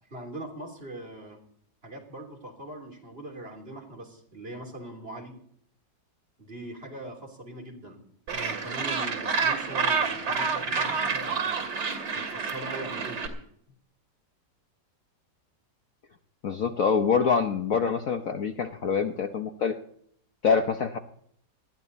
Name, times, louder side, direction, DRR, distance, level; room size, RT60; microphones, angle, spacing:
voice 1, 0.1-1.4 1.8-5.4 6.4-8.0 8.3-11.6 12.1-13.4, right 1 dB, 30° right, 0 dB, 3.4 m, -41 dB
Gull seagull, 8.3-13.3, right 5 dB, 65° right, 3.0 m, -28 dB
voice 2, 16.4-19.7 20.4-21.0, left 6 dB, 55° left, 7 dB, 1.2 m, -25 dB
19.5 x 13.5 x 4.1 m, 0.65 s
omnidirectional pair, 2.0 m